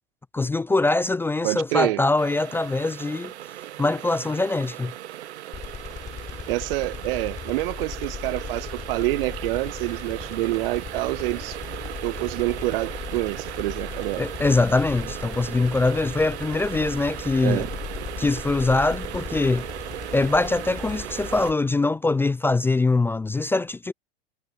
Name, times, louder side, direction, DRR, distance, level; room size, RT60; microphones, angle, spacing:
voice 1, 0.3-3.3 3.8-4.9 14.2-17.7 18.2-19.7 20.1-23.9, left 3 dB, 5° left, 0.4 m, -23 dB
voice 2, 1.4-2.0 6.5-11.6 12.0-14.2 17.4-17.7, right 20 dB, 60° right, 0.5 m, -27 dB
sound 1, 2.2-21.5, right 13 dB, 85° right, 0.8 m, -37 dB
sound 2, 5.5-21.5, left 7 dB, 25° left, 4.3 m, -38 dB
hypercardioid pair, 115°, 32 cm